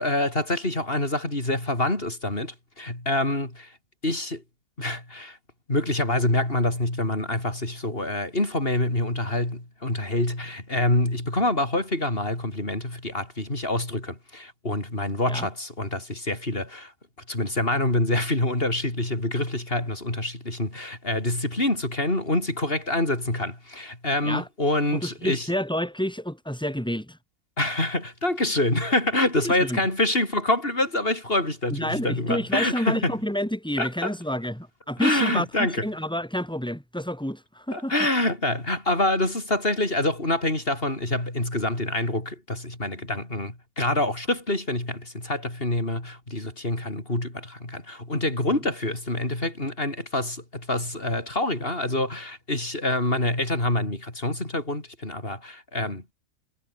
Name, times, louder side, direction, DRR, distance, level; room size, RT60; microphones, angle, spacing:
voice 1, 0.0-3.7 4.0-4.4 4.8-5.4 5.7-16.9 17.3-25.5 27.6-33.1 33.8-34.1 35.0-35.8 37.7-56.1, left 1 dB, 40° left, 6.1 m, -26 dB
voice 2, 24.9-27.2 29.3-29.8 31.7-38.1 48.5-48.6, equal, 5° left, 6.2 m, -29 dB
omnidirectional pair, 1.4 m